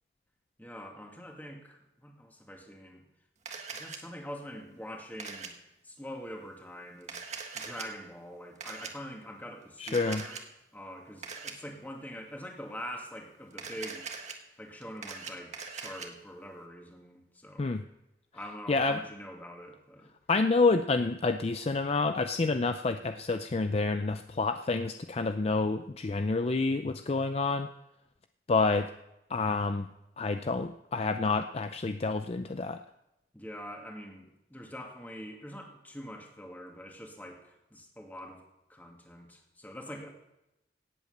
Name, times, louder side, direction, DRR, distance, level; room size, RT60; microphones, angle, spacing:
voice 1, 0.6-3.0 3.7-5.5 5.8-7.2 7.5-10.4 10.7-14.1 14.6-17.8 18.3-20.1 33.3-38.4 38.7-40.1, equal, 10° left, 1 dB, 2.2 m, -44 dB
Camera, 3.5-4.0 5.2-5.5 7.0-7.9 8.6-8.9 9.9-10.4 11.2-11.5 13.5-14.3 14.8-16.1, right 5 dB, 40° right, 1.5 m, -41 dB
voice 2, 9.8-10.2 17.6-17.8 18.7-19.0 20.3-27.7 28.5-28.9 29.3-29.9 30.2-32.8, left 3 dB, 35° left, 9 dB, 0.4 m, -28 dB
17.5 x 8.2 x 6.6 m, 0.90 s
head